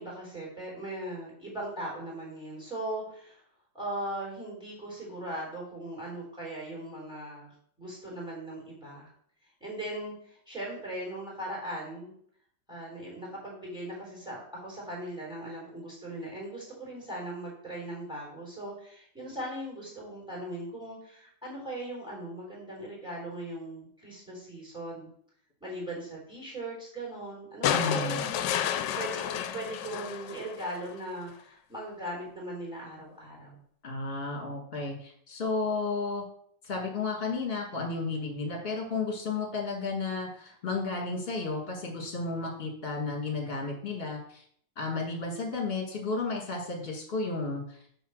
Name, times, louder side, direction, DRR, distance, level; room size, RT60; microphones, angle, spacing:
voice 1, 0.0-3.4 3.7-9.1 9.6-12.1 12.7-25.1 25.6-33.6, right 1 dB, ahead, -4 dB, 3.5 m, -39 dB
sound 1, 27.6-30.9 32.3-32.4, left 10 dB, 80° left, 1.2 m, -31 dB
voice 2, 27.7-28.2 33.8-36.2 36.6-44.4 44.8-47.8, left 3 dB, 35° left, 0 dB, 1.9 m, -33 dB
6.9 x 3.8 x 6.4 m, 0.62 s
omnidirectional pair, 1.9 m